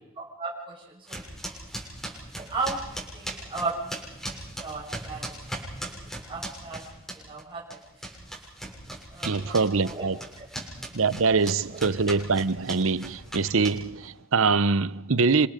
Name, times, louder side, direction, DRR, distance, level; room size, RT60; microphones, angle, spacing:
voice 1, 0.2-1.2 2.3-4.0 4.3-5.3 5.9-6.8 7.3-7.8 9.1-10.1 10.4-10.5, right 3 dB, 25° right, 6.4 m, -35 dB
sound 1, 1.1-7.4 7.7-14.1, right 1 dB, ahead, 7.1 m, -38 dB
voice 2, 9.2-10.2 10.9-15.5, right 4 dB, 70° right, 0.8 m, -24 dB
30.0 x 27.0 x 5.2 m
head